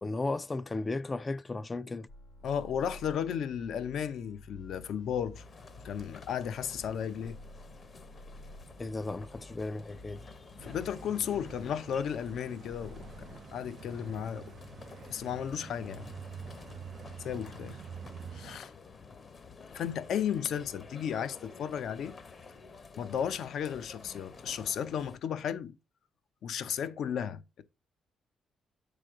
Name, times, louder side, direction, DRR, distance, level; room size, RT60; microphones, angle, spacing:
voice 1, 0.0-2.1 8.8-10.3, left 2 dB, 25° left, 0.4 m, -35 dB
sound 1, 2.1-13.4, equal, 85° left, 2.4 m, -52 dB
voice 2, 2.4-5.4 5.8-7.4 10.6-14.5 15.1-16.1 17.2-17.8 18.3-18.7 19.7-22.1 23.0-25.8 26.4-27.6, left 8 dB, 70° left, 0.7 m, -34 dB
sound 2, 5.3-25.2, left 5 dB, 45° left, 0.9 m, -51 dB
sound 3, 10.6-18.6, right 8 dB, 55° right, 0.4 m, -48 dB
7.6 x 5.1 x 3.7 m
cardioid pair, 90°, 0 cm